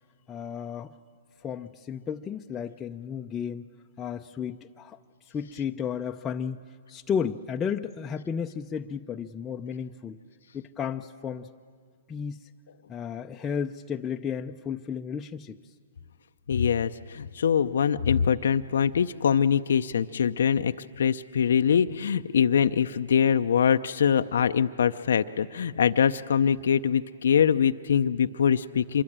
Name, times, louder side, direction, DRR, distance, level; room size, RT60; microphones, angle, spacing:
voice 1, 0.3-0.9 1.4-3.7 4.0-5.0 5.3-6.6 6.9-10.2 10.5-11.5 12.1-12.5 12.9-15.6, left 7 dB, 20° left, 2 dB, 0.6 m, -33 dB
voice 2, 16.5-29.0, left 7 dB, 70° left, 9 dB, 0.6 m, -23 dB
26.5 x 22.5 x 8.9 m, 2.1 s
hypercardioid pair, 125°, 0 cm